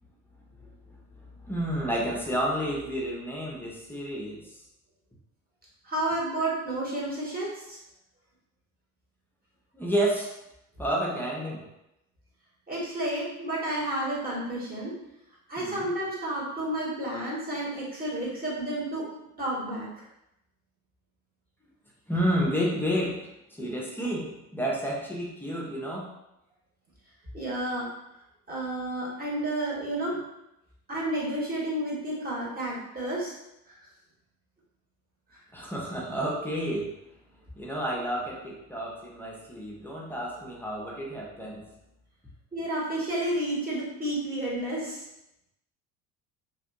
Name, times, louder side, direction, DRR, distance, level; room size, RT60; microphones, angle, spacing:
voice 1, 1.1-4.4 9.7-10.3 10.8-11.6 15.6-15.9 22.1-23.2 23.6-26.1 35.5-36.9 37.6-41.6, equal, 5° left, -4 dB, 0.4 m, -30 dB
voice 2, 5.8-7.8 12.7-14.9 15.5-19.0 19.4-19.9 27.3-27.9 28.5-30.2 30.9-33.3 33.7-33.8 42.5-45.0, right 1 dB, 20° right, -5 dB, 0.9 m, -31 dB
2.5 x 2.2 x 2.4 m, 0.86 s
figure-of-eight pair, 60°, 45 cm